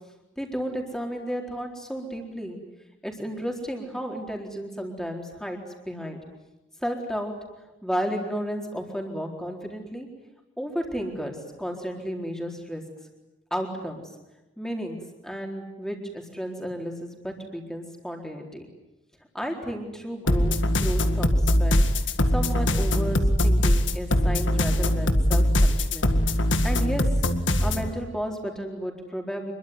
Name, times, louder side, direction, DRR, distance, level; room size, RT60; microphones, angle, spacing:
voice 1, 0.4-2.6 3.0-5.6 5.9-6.2 6.8-7.3 7.8-10.1 10.6-12.8 13.5-14.0 14.6-15.0 15.2-18.7 19.3-21.9 22.3-26.1 26.6-27.1 27.6-29.5, equal, 5° left, 2 dB, 4.2 m, -32 dB
sound 1, 20.3-27.9, left 1 dB, 75° left, 2.0 m, -22 dB
27.0 x 22.5 x 9.6 m, 0.99 s
head